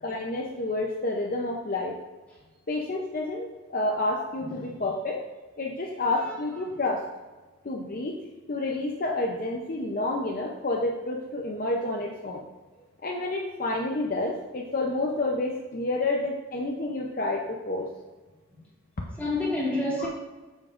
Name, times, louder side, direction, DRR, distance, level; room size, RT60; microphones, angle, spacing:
voice 1, 0.0-2.0 2.7-5.2 5.6-7.0 7.6-8.2 8.5-12.4 13.0-17.9 20.0-20.1, left 2 dB, 45° left, 0.6 m, -29 dB
voice 2, 19.2-20.1, left 2 dB, 5° left, 2.5 m, -29 dB
8.4 x 7.2 x 2.5 m
head